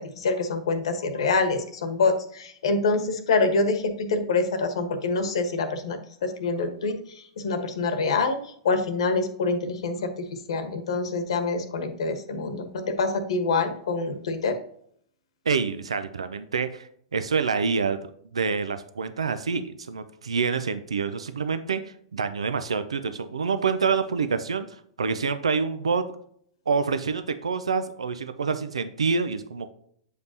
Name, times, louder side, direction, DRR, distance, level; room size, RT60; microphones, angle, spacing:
voice 1, 0.0-14.6, left 3 dB, 70° left, 8 dB, 1.2 m, -26 dB
voice 2, 15.5-21.8 22.1-24.7 25.0-26.0 26.7-29.7, right 5 dB, 85° right, 10 dB, 0.5 m, -27 dB
8.0 x 5.1 x 2.8 m, 0.66 s
hypercardioid pair, 110°, 3 cm